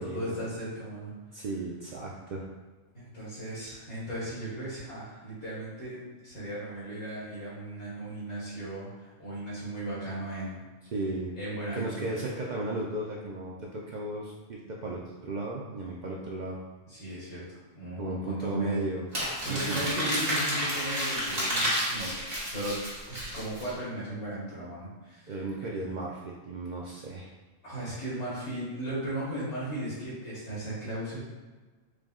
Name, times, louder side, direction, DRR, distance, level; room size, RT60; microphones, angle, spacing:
voice 1, 0.0-1.4 2.9-10.6 11.4-12.2 16.9-18.9 19.2-22.1 22.5-22.8 23.1-25.4 25.6-25.7 27.6-31.2, right 1 dB, 65° left, -9 dB, 1.8 m, -36 dB
voice 2, 1.3-2.5 10.9-11.3 11.7-16.6 18.0-19.0 19.5-19.9 25.3-27.3, right 2 dB, 80° right, -3 dB, 0.4 m, -35 dB
Crumpling crinkling, 19.1-23.7, equal, 45° right, 1.5 m, -30 dB
4.8 x 2.0 x 3.6 m, 1.3 s
omnidirectional pair, 1.3 m